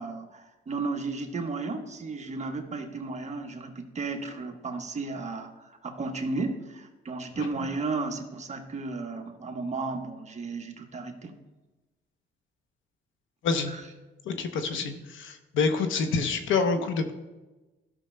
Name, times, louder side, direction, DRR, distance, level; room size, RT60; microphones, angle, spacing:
voice 1, 0.0-11.3 13.7-13.9, right 3 dB, 35° right, 4 dB, 1.1 m, -34 dB
voice 2, 14.3-17.1, left 4 dB, 80° left, 7 dB, 0.8 m, -27 dB
13.5 x 6.3 x 2.2 m, 1.1 s
cardioid pair, 90°, 20 cm